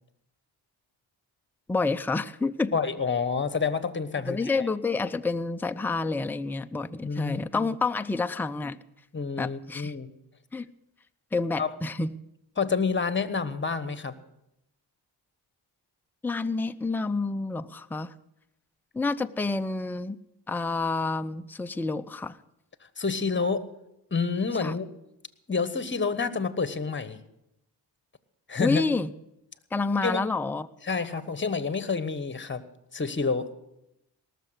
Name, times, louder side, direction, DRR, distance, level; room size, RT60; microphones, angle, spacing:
voice 1, 1.7-2.7 4.2-8.8 9.4-9.9 10.5-10.7 11.3-12.2 16.2-18.1 18.9-20.2 20.5-22.4 24.6-24.7 28.6-29.1 29.7-30.7, left 3 dB, 5° left, 9 dB, 0.5 m, -28 dB
voice 2, 2.7-4.6 7.0-7.7 9.1-10.1 11.6-11.7 12.6-14.2 23.0-23.6 24.1-24.9 25.5-27.2 28.5-28.8 30.0-30.2 30.8-32.6 32.9-33.5, left 5 dB, 25° left, 14 dB, 1.2 m, -28 dB
18.5 x 6.8 x 8.1 m, 0.84 s
cardioid pair, 60°, 46 cm